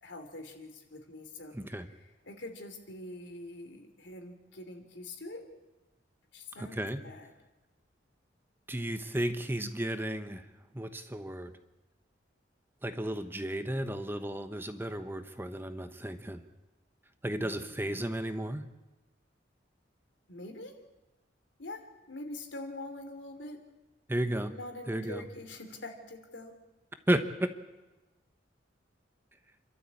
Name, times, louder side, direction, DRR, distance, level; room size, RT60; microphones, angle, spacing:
voice 1, 0.0-5.5 6.3-7.3 17.4-17.9 20.3-20.7 21.6-21.8 22.1-23.6 24.5-26.6, left 2 dB, 75° left, 5 dB, 3.2 m, -44 dB
voice 2, 1.5-1.9 6.6-7.0 8.7-10.4 10.7-11.5 12.8-16.4 17.2-18.6 24.1-24.5 24.9-25.2 27.1-27.2, right 1 dB, 10° right, 9 dB, 1.1 m, -33 dB
28.5 x 12.5 x 8.5 m, 1.1 s
head